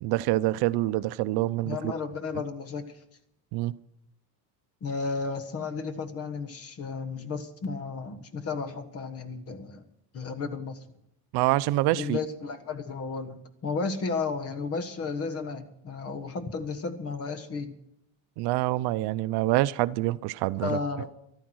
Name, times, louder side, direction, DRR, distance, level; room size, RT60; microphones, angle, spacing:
voice 1, 0.0-1.9 3.5-3.7 11.3-12.2 18.4-20.8, right 17 dB, 70° right, 15 dB, 0.6 m, -26 dB
voice 2, 1.6-2.9 4.8-9.8 10.1-10.8 11.9-17.7 20.6-21.1, left 4 dB, 35° left, 10 dB, 1.5 m, -33 dB
14.0 x 12.5 x 6.3 m, 0.77 s
cardioid pair, 155°, 40 cm